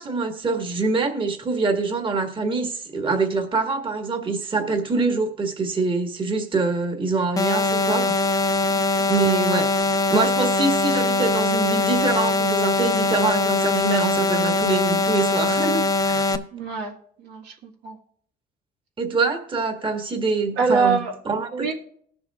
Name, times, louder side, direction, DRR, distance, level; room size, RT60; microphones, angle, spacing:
voice 1, 0.0-8.5 9.1-9.7 10.1-16.4 19.0-21.0 21.2-21.7, right 3 dB, 30° right, 4 dB, 1.6 m, -25 dB
sound 1, 7.4-16.4, left 2 dB, 20° left, 0.7 m, -22 dB
voice 2, 16.5-18.0 20.6-21.1 21.5-21.7, right 5 dB, 85° right, 1 dB, 1.7 m, -25 dB
19.5 x 7.0 x 2.5 m, 0.63 s
cardioid pair, 110°, 17 cm